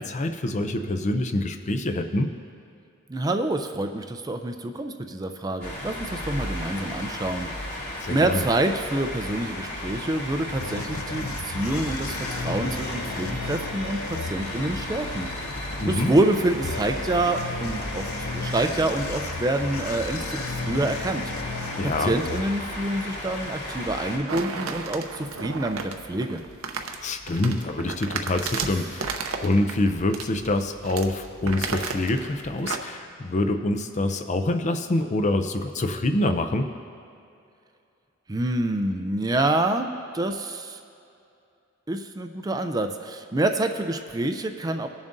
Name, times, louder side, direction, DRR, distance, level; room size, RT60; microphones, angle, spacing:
voice 1, 0.0-2.3 8.0-8.4 15.8-16.1 21.8-22.1 27.0-36.7, left 2 dB, 35° left, 7 dB, 0.5 m, -26 dB
voice 2, 3.1-7.7 8.1-15.5 15.8-21.6 22.0-26.4 38.3-39.9 40.1-40.8 41.9-44.9, right 2 dB, 20° right, 6 dB, 0.4 m, -27 dB
sound 1, 5.6-24.2, left 1 dB, 55° left, 2.7 m, -34 dB
sound 2, 10.1-23.0, left 3 dB, 85° left, 0.6 m, -35 dB
sound 3, 24.3-32.8, right 4 dB, 85° right, 0.7 m, -34 dB
20.0 x 7.2 x 2.6 m, 2.5 s
head